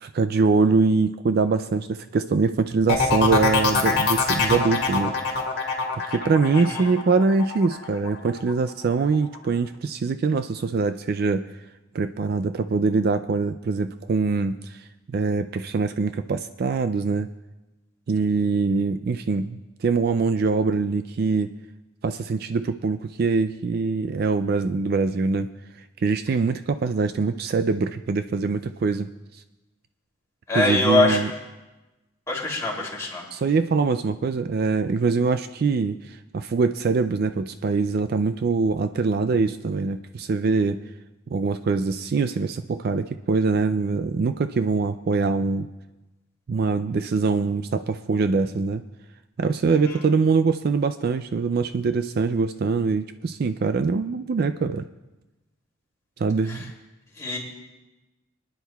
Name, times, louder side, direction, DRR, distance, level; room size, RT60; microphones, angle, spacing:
voice 1, 0.0-5.1 5.9-11.5 11.9-17.3 18.1-21.5 22.0-25.5 26.0-29.4 30.5-31.3 33.3-40.8 41.3-45.7 46.5-48.8 49.4-54.8 56.2-56.7, right 4 dB, 45° right, 10 dB, 0.3 m, -23 dB
sound 1, 2.9-8.5 8.9-9.4, left 4 dB, 50° left, 1.9 m, -24 dB
voice 2, 6.5-6.9 30.5-31.2 32.3-33.2 56.5-56.6 57.2-57.4, left 2 dB, 15° left, -4 dB, 2.8 m, -23 dB
24.5 x 10.0 x 2.3 m, 1.1 s
head